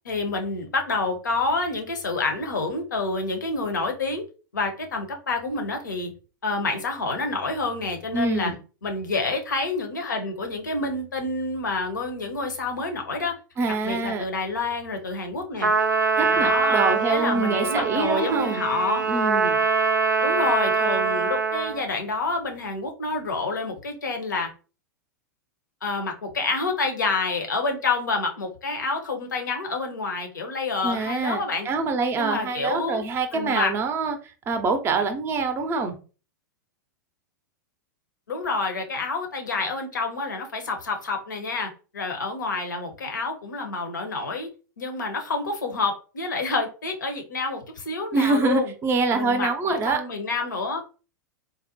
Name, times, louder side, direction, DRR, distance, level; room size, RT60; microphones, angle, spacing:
voice 1, 0.0-4.2 4.5-6.1 6.4-8.5 8.8-13.4 13.7-15.7 16.3-19.0 20.2-24.5 25.8-31.7 32.2-33.0 33.3-33.7 38.3-44.5 44.8-48.7 49.1-50.8, left 3 dB, 75° left, 4 dB, 0.7 m, -28 dB
voice 2, 8.1-8.6 13.6-14.2 16.2-18.7 19.1-19.6 30.8-36.0 48.1-50.0, right 3 dB, 25° right, 8 dB, 0.5 m, -25 dB
Trumpet, 15.6-21.8, right 4 dB, 85° right, 0.4 m, -23 dB
3.9 x 2.1 x 2.7 m, 0.35 s
figure-of-eight pair, 95°, 10 cm